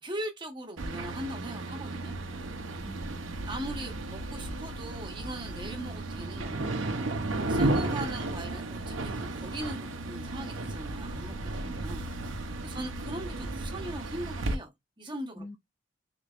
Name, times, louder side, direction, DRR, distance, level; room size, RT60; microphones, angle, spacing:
voice 1, 0.0-2.1 3.5-12.1 12.4-14.7 15.0-15.4, right 1 dB, 25° right, 1.1 m, -40 dB
sound 1, 0.8-14.6, right 2 dB, 85° right, 0.7 m, -34 dB
voice 2, 2.8-3.5 11.6-12.3 12.7-12.9 15.4-15.6, left 1 dB, 10° left, 0.5 m, -48 dB
3.9 x 3.3 x 2.4 m
head